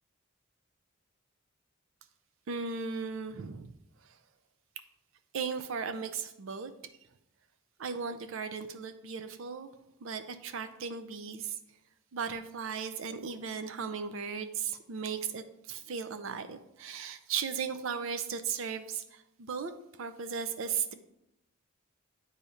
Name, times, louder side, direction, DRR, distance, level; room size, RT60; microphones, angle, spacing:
voice 1, 2.5-3.7 5.3-6.7 7.8-9.7 10.0-11.6 12.1-19.7 20.0-20.9, right 6 dB, 70° right, 9 dB, 0.5 m, -36 dB
8.2 x 2.8 x 4.9 m, 0.81 s
head